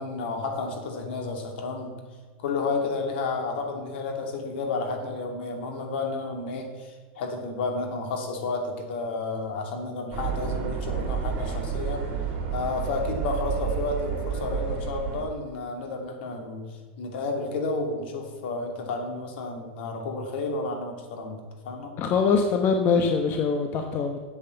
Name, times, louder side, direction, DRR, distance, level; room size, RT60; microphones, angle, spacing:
voice 1, 0.0-1.9 2.4-12.0 12.5-16.6 17.0-22.0, left 3 dB, 70° left, 2 dB, 2.7 m, -31 dB
sound 1, 10.1-15.2, right 7 dB, 40° right, 3.2 m, -30 dB
voice 2, 22.0-24.2, left 5 dB, 35° left, 4 dB, 1.0 m, -23 dB
8.6 x 7.9 x 7.0 m, 1.5 s
supercardioid pair, 135°, 6 cm